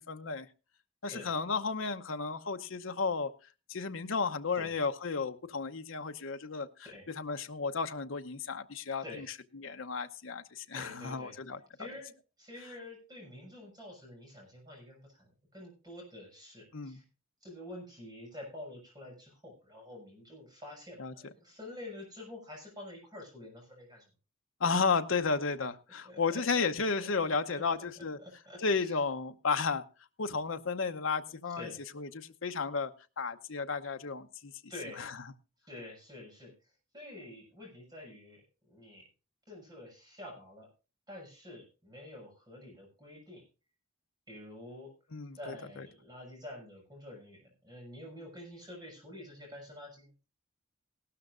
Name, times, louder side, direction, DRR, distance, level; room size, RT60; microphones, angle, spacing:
voice 1, 0.1-0.5 1.0-3.3 3.7-6.7 7.2-9.0 9.6-11.6 16.7-17.0 21.0-21.1 24.6-28.2 28.6-29.8 30.2-31.7 32.0-32.9 33.2-34.5 35.0-35.1 45.1-45.5, left 4 dB, 70° left, 7 dB, 0.8 m, -33 dB
voice 2, 10.7-11.3 11.8-17.0 17.4-24.0 26.0-29.0 31.5-31.8 34.7-35.0 35.7-39.1 39.5-40.7 41.1-43.4 44.3-44.9 45.3-50.1, left 1 dB, 20° right, 0 dB, 6.6 m, -48 dB
17.5 x 12.5 x 2.5 m, 0.33 s
head